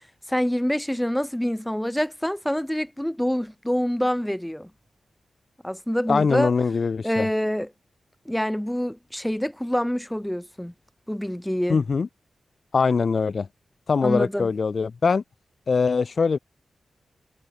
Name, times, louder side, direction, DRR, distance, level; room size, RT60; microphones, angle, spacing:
voice 1, 0.3-4.7 5.6-6.5 7.0-7.7 8.3-10.7 11.1-11.8 14.0-14.5, equal, 5° left, 2.6 m, -26 dB
voice 2, 6.1-7.3 11.7-12.1 12.7-13.5 13.9-15.2 15.7-16.4, left 5 dB, 45° left, 0.6 m, -22 dB
wide cardioid pair, 145°, 0 cm